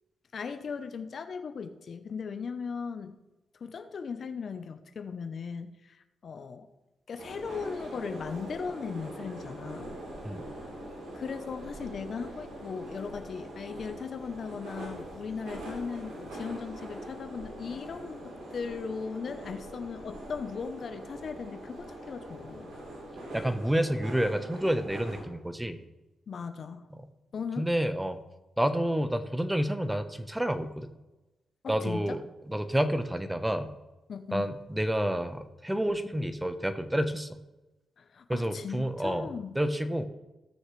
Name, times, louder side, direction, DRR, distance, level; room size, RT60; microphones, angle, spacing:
voice 1, 0.3-3.1 3.6-6.7 7.1-10.0 11.1-22.7 26.3-26.9 27.3-27.7 31.6-32.2 34.1-34.4 38.0-39.5, left 5 dB, 60° left, 9 dB, 0.8 m, -38 dB
sound 1, 7.2-25.2, right 1 dB, 85° right, 3.7 m, -43 dB
voice 2, 23.3-25.8 26.9-27.1 27.6-28.2 28.6-30.9 31.7-33.7 34.3-37.4 38.3-39.3 39.5-40.0, right 1 dB, 10° right, 9 dB, 1.0 m, -29 dB
17.5 x 6.5 x 3.3 m, 1.0 s
supercardioid pair, 50°, 0 cm